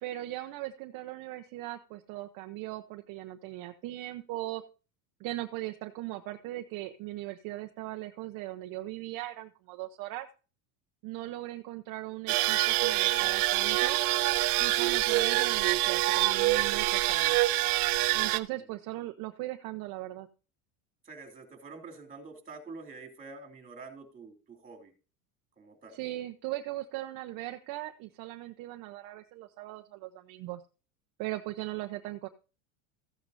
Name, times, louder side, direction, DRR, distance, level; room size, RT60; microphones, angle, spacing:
voice 1, 0.0-4.6 5.2-10.3 11.0-14.0 14.6-17.5 18.1-20.3 25.9-30.6 31.2-32.3, right 16 dB, 50° right, 5 dB, 0.9 m, -39 dB
sound 1, 12.3-18.4, right 18 dB, 80° right, 0.9 m, -26 dB
voice 2, 21.0-24.9 25.6-26.0, right 4 dB, 15° right, 4 dB, 3.0 m, -47 dB
14.5 x 9.5 x 2.6 m, 0.34 s
supercardioid pair, 140°, 44 cm